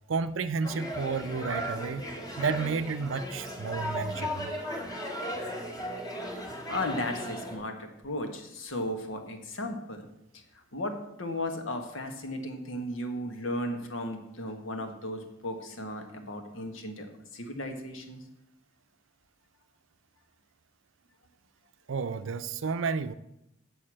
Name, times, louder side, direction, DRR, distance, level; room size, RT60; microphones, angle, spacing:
voice 1, 0.1-2.0 2.4-4.5 21.9-23.1, right 5 dB, 75° right, 0.5 m, -31 dB
sound 1, 0.6-7.6, equal, 20° left, 1.5 m, -36 dB
voice 2, 5.9-6.4 6.7-10.1 10.7-18.2, left 1 dB, 80° left, 1.5 m, -35 dB
7.8 x 6.5 x 7.6 m
head